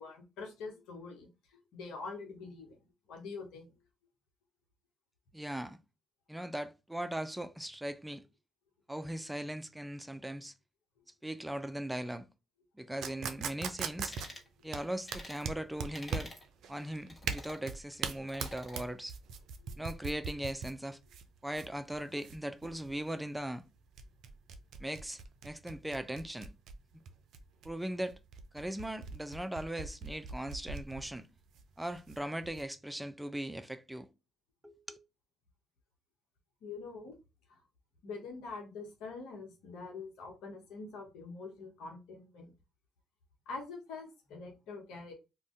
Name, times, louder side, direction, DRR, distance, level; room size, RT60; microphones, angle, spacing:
voice 1, 0.0-3.7 19.6-19.7 36.6-37.2 37.5-37.6 38.0-42.5 43.5-45.1, left 4 dB, 80° left, 0.9 m, -45 dB
voice 2, 5.3-5.8 6.3-8.3 8.9-10.5 11.2-12.3 12.8-14.1 14.6-16.3 16.7-19.2 19.8-21.0 21.4-23.6 24.8-26.5 27.6-28.2 28.5-31.3 31.8-34.1 34.6-35.0, right 1 dB, 10° right, 0.4 m, -39 dB
sound 1, 13.0-32.6, right 6 dB, 70° right, 0.4 m, -42 dB
sound 2, 14.1-14.5 15.1-15.4 15.9-16.4 17.1-17.6 18.3-18.9, left 1 dB, 30° left, 1.2 m, -49 dB
2.5 x 2.1 x 3.5 m
supercardioid pair, 55°, 0 cm